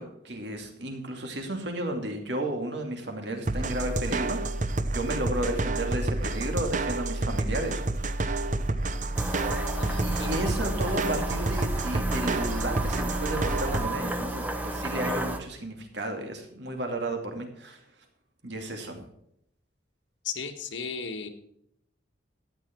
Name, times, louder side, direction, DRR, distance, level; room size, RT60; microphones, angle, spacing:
voice 1, 0.0-4.4 4.9-8.1 9.9-17.8 18.4-19.1, right 1 dB, 65° right, 4 dB, 2.5 m, -33 dB
sound 1, 3.5-13.9, right 2 dB, 40° right, 0.7 m, -29 dB
sound 2, 9.2-15.4, right 1 dB, 10° right, 1.0 m, -33 dB
voice 2, 9.7-10.4 20.2-21.3, left 5 dB, 75° left, 6 dB, 1.6 m, -36 dB
13.5 x 9.6 x 4.6 m, 0.75 s
head